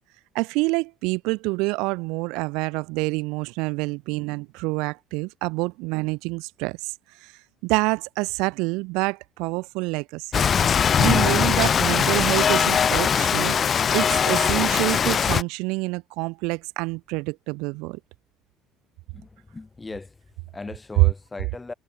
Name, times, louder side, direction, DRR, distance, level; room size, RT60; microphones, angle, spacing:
voice 1, 0.3-6.9 7.2-7.3 7.6-10.4 11.0-18.0, right 26 dB, 85° right, 0.8 m, -27 dB
Rain, 10.3-15.4, left 7 dB, 35° left, 0.5 m, -20 dB
voice 2, 19.1-21.7, left 3 dB, 15° left, 1.9 m, -38 dB
cardioid pair, 125°, 0 cm